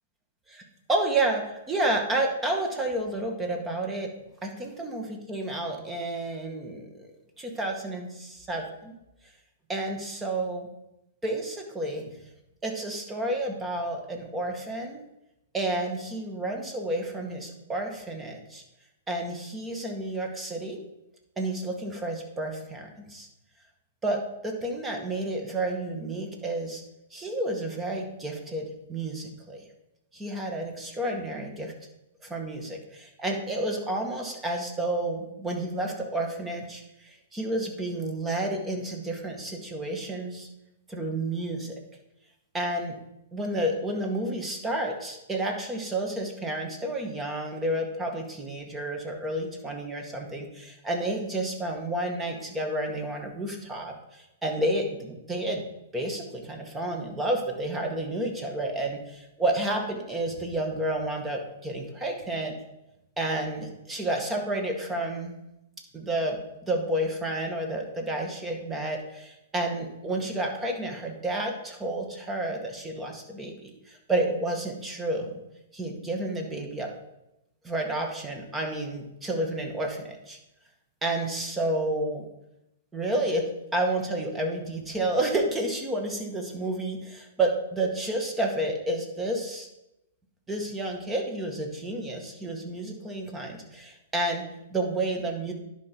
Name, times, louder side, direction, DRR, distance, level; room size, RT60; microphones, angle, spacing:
voice 1, 0.9-4.1 4.4-7.1 7.4-8.9 9.7-10.7 11.2-12.1 12.6-15.0 15.5-18.6 19.1-20.8 21.4-23.3 24.0-26.8 27.1-29.6 30.1-31.7 32.2-40.5 40.9-41.8 42.5-43.0 43.3-55.6 55.9-62.5 63.2-65.3 65.9-75.3 75.7-76.9 77.6-80.4 81.0-82.2 82.9-89.7 90.5-95.5, right 1 dB, 15° right, 3 dB, 1.7 m, -30 dB
10.5 x 5.2 x 4.6 m, 0.89 s
figure-of-eight pair, 115°, 0 cm